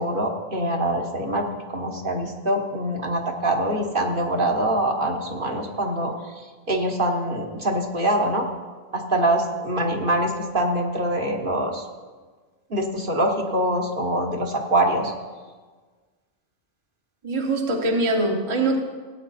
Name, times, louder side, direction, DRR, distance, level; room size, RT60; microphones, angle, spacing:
voice 1, 0.0-1.4 1.7-6.1 6.7-8.4 8.9-11.8 12.7-15.1, right 1 dB, 45° right, 1 dB, 1.4 m, -24 dB
voice 2, 17.2-18.8, right 2 dB, 25° right, 1 dB, 1.1 m, -23 dB
17.0 x 8.8 x 4.2 m, 1.4 s
omnidirectional pair, 1.3 m